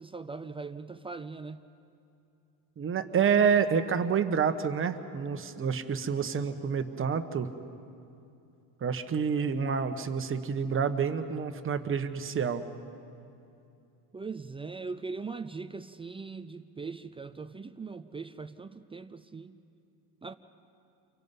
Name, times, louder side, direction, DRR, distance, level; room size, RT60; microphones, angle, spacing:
voice 1, 0.0-1.6 14.1-19.6 20.2-20.3, right 4 dB, 15° right, 10 dB, 0.4 m, -40 dB
voice 2, 2.8-7.5 8.8-12.6, right 6 dB, 30° right, 8 dB, 1.2 m, -28 dB
29.5 x 24.0 x 5.5 m, 2.7 s
cardioid pair, 130°, 41 cm